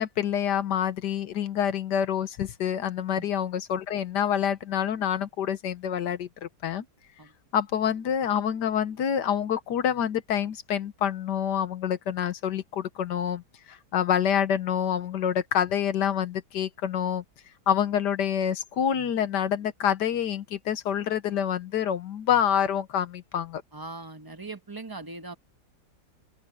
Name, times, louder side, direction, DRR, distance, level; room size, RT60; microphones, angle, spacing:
voice 1, 0.0-6.8 7.5-13.4 13.7-17.2 17.7-23.6, left 9 dB, 70° left, 1.5 m, -27 dB
voice 2, 23.7-25.3, right 3 dB, 15° right, 0.9 m, -40 dB
open air
omnidirectional pair, 2.0 m